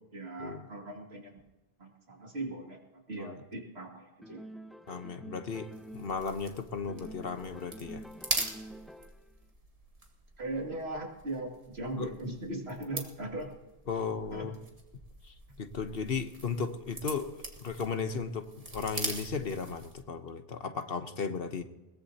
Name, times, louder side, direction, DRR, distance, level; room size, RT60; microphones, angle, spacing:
voice 1, 0.0-1.4 1.8-4.4 10.4-13.5 14.3-14.5, right 2 dB, 85° right, 0 dB, 2.6 m, -39 dB
sound 1, 4.2-6.6 6.9-9.3, right 1 dB, ahead, 0.6 m, -48 dB
voice 2, 4.9-8.0 12.0-12.1 13.9-14.6 15.2-18.4 18.7-21.6, left 5 dB, 65° left, 8 dB, 1.3 m, -35 dB
sound 2, 5.7-20.1, right 2 dB, 35° right, 2.0 m, -42 dB
21.5 x 19.0 x 2.9 m, 1.1 s
omnidirectional pair, 1.0 m